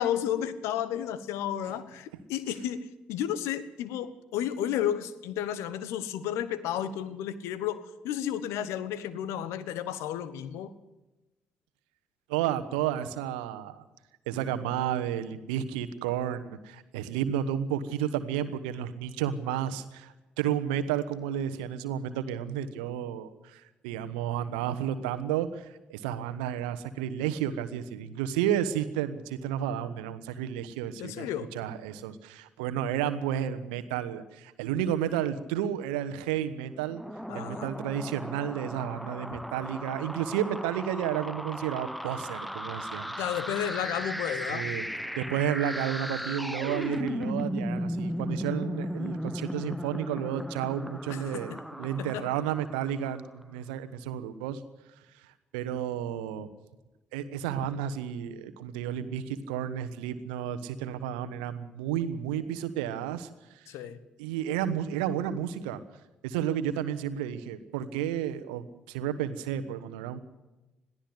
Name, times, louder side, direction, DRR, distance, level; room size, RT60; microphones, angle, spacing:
voice 1, 0.0-10.7 31.0-31.5 37.3-37.7 43.2-44.7 51.1-51.6 52.0-52.3 63.7-64.0, left 10 dB, 70° left, 16 dB, 1.2 m, -32 dB
voice 2, 12.3-13.8 14.3-37.0 37.3-43.1 44.5-44.9 45.1-54.6 55.2-56.5 57.1-63.7 64.2-65.8 66.2-70.2, right 10 dB, 80° right, 11 dB, 1.1 m, -32 dB
sound 1, 36.8-53.2, equal, ahead, 1.0 m, -36 dB
21.5 x 15.0 x 8.1 m, 1.0 s
figure-of-eight pair, 40°, 5 cm